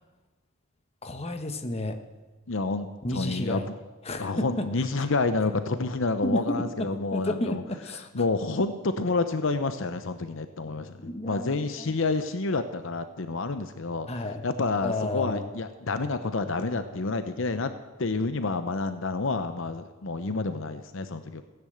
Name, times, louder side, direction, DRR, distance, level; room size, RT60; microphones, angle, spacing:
voice 1, 1.0-2.0 3.0-3.7 4.0-5.1 6.2-8.2 11.0-11.9 14.1-14.5 14.8-15.5, left 1 dB, 30° left, 7 dB, 1.2 m, -32 dB
voice 2, 2.5-3.6 4.2-7.6 8.1-10.9 11.2-14.1 14.4-17.7 18.0-21.4, left 3 dB, 65° left, 10 dB, 0.8 m, -29 dB
16.0 x 10.5 x 7.9 m, 1.2 s
head